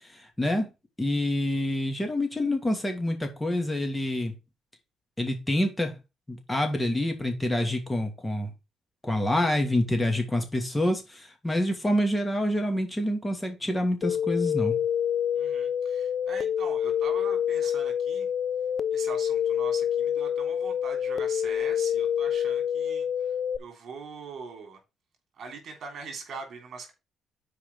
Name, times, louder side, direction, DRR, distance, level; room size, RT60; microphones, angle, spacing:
voice 1, 0.4-0.7 1.0-4.3 5.2-5.9 6.3-8.5 9.0-14.7, left 1 dB, 15° left, 2.7 m, -27 dB
sound 1, 14.0-23.6, left 9 dB, 55° left, 0.6 m, -27 dB
voice 2, 15.3-18.3 18.9-24.8 25.3-26.9, right 4 dB, 60° right, 3.5 m, -42 dB
7.1 x 4.9 x 5.6 m
cardioid pair, 90°, 0 cm